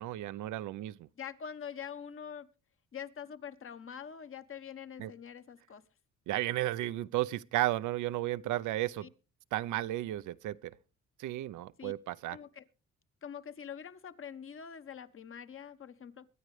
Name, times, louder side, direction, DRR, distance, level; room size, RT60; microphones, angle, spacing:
voice 1, 0.0-1.1 5.0-5.1 6.3-9.1 9.5-10.7 11.2-12.4, right 15 dB, 80° right, 0.6 m, -33 dB
voice 2, 1.2-2.5 2.9-5.8 9.0-9.1 11.8-11.9 12.3-12.6 13.2-16.3, left 7 dB, 45° left, 1.1 m, -44 dB
22.5 x 9.6 x 3.2 m
cardioid pair, 90°, 30 cm